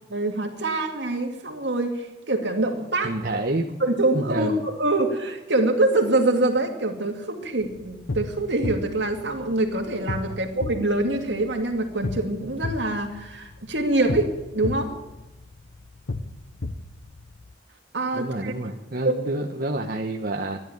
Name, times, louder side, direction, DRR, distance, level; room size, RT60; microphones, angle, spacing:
voice 1, 0.1-3.1 3.8-14.9 17.9-18.5 19.0-19.2, right 2 dB, 70° right, 3 dB, 2.3 m, -25 dB
voice 2, 3.0-3.8 4.1-4.6 10.3-10.4 18.1-20.6, right 2 dB, 55° right, 2 dB, 1.1 m, -28 dB
sound 1, 7.6-17.5, left 2 dB, 75° left, 0.9 m, -35 dB
14.0 x 11.0 x 9.3 m, 1.0 s
head